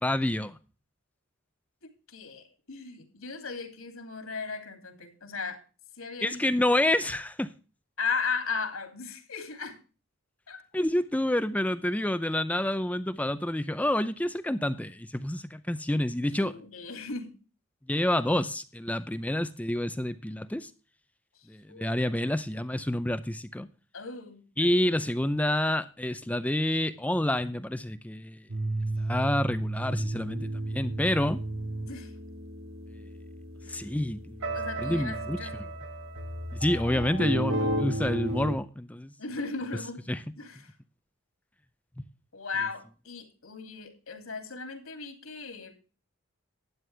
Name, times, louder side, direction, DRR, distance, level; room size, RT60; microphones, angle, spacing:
voice 1, 0.0-0.6 6.2-7.5 10.7-16.5 17.9-20.7 21.5-23.7 24.6-28.4 29.0-31.4 33.7-34.5 34.8-35.4 36.5-39.1 40.1-40.2 42.0-42.1, left 1 dB, 5° left, 0.5 m, -28 dB
voice 2, 1.8-5.6 6.0-6.4 8.0-9.8 10.5-10.6 16.3-17.3 21.7-22.0 23.9-24.8 31.9-32.1 33.6-33.9 34.5-35.7 39.2-40.0 40.4-40.7 42.3-45.8, left 5 dB, 75° left, 2.8 m, -36 dB
sound 1, 28.5-38.6, right 1 dB, 65° right, 1.6 m, -33 dB
12.5 x 9.7 x 3.3 m
head